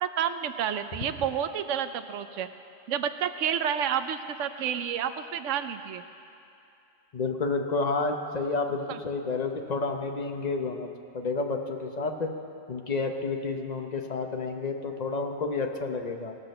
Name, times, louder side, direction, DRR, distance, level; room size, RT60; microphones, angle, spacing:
voice 1, 0.0-2.5 2.9-6.0 8.9-9.0, right 9 dB, 80° right, 11 dB, 1.0 m, -30 dB
voice 2, 7.1-10.9 11.1-12.3 12.7-16.4, left 3 dB, 40° left, 4 dB, 0.8 m, -30 dB
18.0 x 6.1 x 6.6 m, 2.7 s
omnidirectional pair, 1.3 m